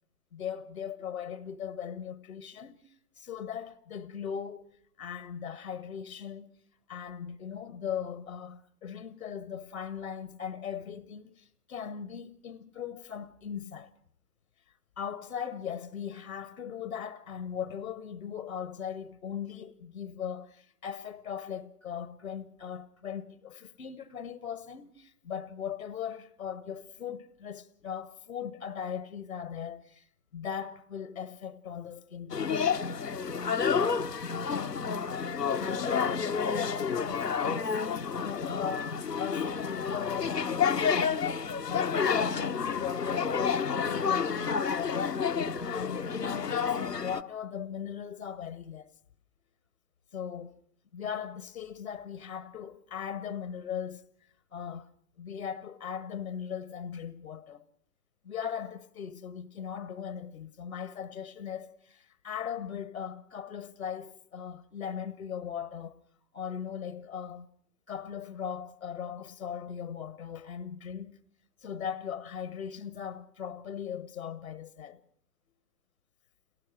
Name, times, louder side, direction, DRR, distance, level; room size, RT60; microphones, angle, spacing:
voice 1, 0.3-4.7 5.0-6.6 6.9-13.9 15.0-30.1 30.3-32.8 34.5-34.9 35.5-41.2 41.7-48.9 50.1-50.6 50.9-54.0 54.5-54.9 55.2-57.6 58.2-66.0 66.3-67.5 67.9-71.2 71.6-75.0, left 8 dB, 60° left, 1.1 m, -39 dB
sound 1, 32.3-47.2, left 6 dB, 80° left, 1.1 m, -30 dB
27.5 x 18.0 x 6.2 m
figure-of-eight pair, 125°, 47 cm